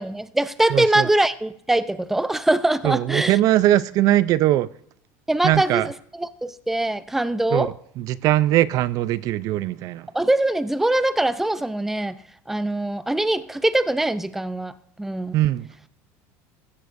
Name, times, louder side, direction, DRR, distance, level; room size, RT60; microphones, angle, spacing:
voice 1, 0.0-3.4 5.3-7.7 10.1-12.1 12.5-14.7 15.0-15.4, right 1 dB, 5° right, 0.5 m, -22 dB
voice 2, 0.7-1.1 2.8-4.7 5.4-5.9 7.5-7.7 8.0-10.1 15.3-15.7, right 14 dB, 55° right, 0.5 m, -20 dB
15.5 x 14.0 x 2.6 m
supercardioid pair, 130°, 7 cm